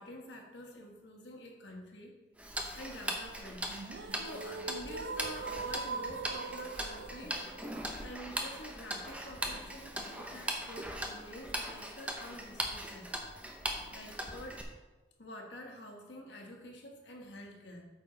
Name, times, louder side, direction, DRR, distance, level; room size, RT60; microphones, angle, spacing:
voice 1, 0.0-2.2 2.7-3.8 4.1-7.4 8.0-13.1 13.9-14.7 15.2-17.9, equal, 85° left, 1 dB, 1.5 m, -48 dB
Tick-tock, 2.4-14.6, right 1 dB, 10° right, 0.7 m, -40 dB
sound 1, 3.7-9.7, right 4 dB, 80° right, 0.5 m, -42 dB
8.5 x 6.3 x 3.9 m, 1.2 s
head